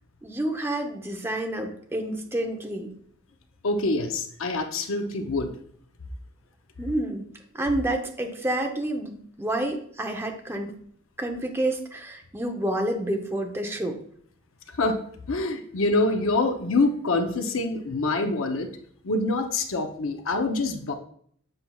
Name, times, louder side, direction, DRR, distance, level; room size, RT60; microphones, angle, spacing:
voice 1, 0.2-2.9 6.8-7.2 7.5-10.7 11.2-14.0, right 1 dB, 10° right, 2 dB, 0.7 m, -29 dB
voice 2, 3.6-5.5 14.8-15.0 15.3-18.7 19.0-20.9, left 2 dB, 75° left, 6 dB, 0.7 m, -25 dB
7.8 x 5.6 x 2.3 m, 0.62 s
head